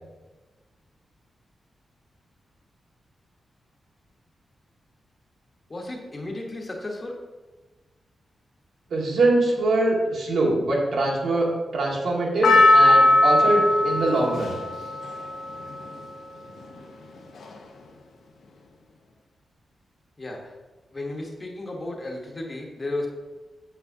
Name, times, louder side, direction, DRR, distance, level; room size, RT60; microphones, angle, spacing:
voice 1, 5.7-7.2 20.2-20.5 20.9-23.1, left 2 dB, 25° left, 0 dB, 1.1 m, -33 dB
voice 2, 8.9-14.5, right 2 dB, 80° right, -2 dB, 1.7 m, -23 dB
Percussion, 12.4-16.8 17.4-17.5, left 1 dB, 80° left, 0.8 m, -20 dB
8.2 x 7.1 x 2.7 m, 1.2 s
wide cardioid pair, 175°, 0 cm